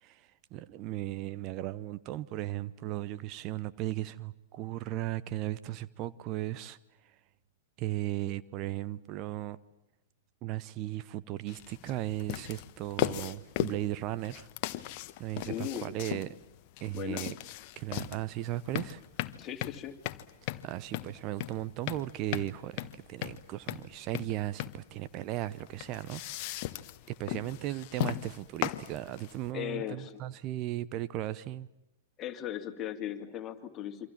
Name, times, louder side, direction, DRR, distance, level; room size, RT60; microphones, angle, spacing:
voice 1, 0.0-6.8 7.8-9.6 10.4-14.5 14.8-14.9 15.2-16.3 16.8-17.3 17.8-19.0 20.6-26.2 27.1-31.7, right 15 dB, 40° right, 16 dB, 0.9 m, -36 dB
sound 1, 11.5-29.5, left 15 dB, 45° left, 1.2 m, -38 dB
voice 2, 15.5-15.9 16.9-17.3 19.4-20.0 29.5-30.2 32.2-34.1, left 11 dB, 30° left, 6 dB, 2.9 m, -37 dB
28.5 x 25.5 x 7.5 m, 0.92 s
figure-of-eight pair, 105°, 0 cm